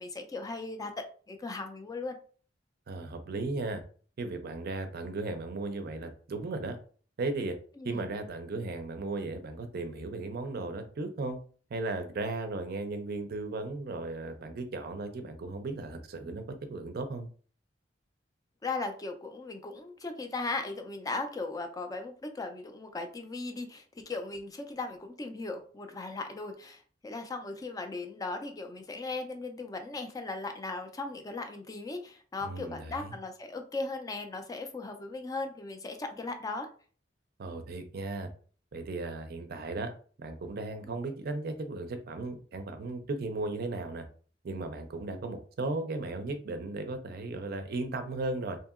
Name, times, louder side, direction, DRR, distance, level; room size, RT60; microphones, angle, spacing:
voice 1, 0.0-2.2 7.8-8.1 18.6-36.7 40.8-41.0, left 3 dB, 20° left, 6 dB, 0.3 m, -38 dB
voice 2, 2.9-3.8 4.2-6.8 7.2-7.6 7.8-11.4 11.7-17.3 32.4-33.1 37.4-38.3 38.7-39.9 40.2-44.0 44.4-48.6, right 2 dB, 55° right, 7 dB, 0.4 m, -36 dB
2.7 x 2.7 x 2.4 m, 0.43 s
head